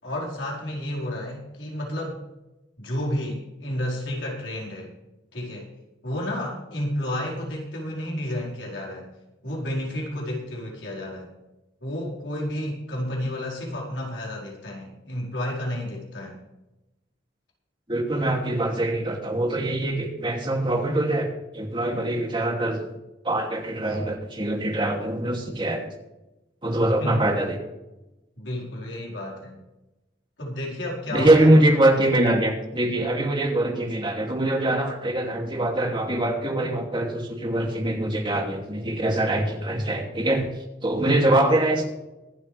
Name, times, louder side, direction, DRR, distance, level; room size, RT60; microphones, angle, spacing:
voice 1, 0.0-2.2 2.8-4.9 5.3-5.7 6.0-9.1 9.4-11.3 11.8-16.4 26.9-27.1 28.4-29.5 30.4-31.5 41.1-41.2, left 1 dB, 90° left, -3 dB, 4.7 m, -31 dB
voice 2, 17.9-21.3 21.5-22.9 23.2-25.9 26.6-27.6 31.1-40.5 40.8-41.8, right 1 dB, 25° right, 1 dB, 2.6 m, -23 dB
24.5 x 8.5 x 3.4 m, 0.99 s
head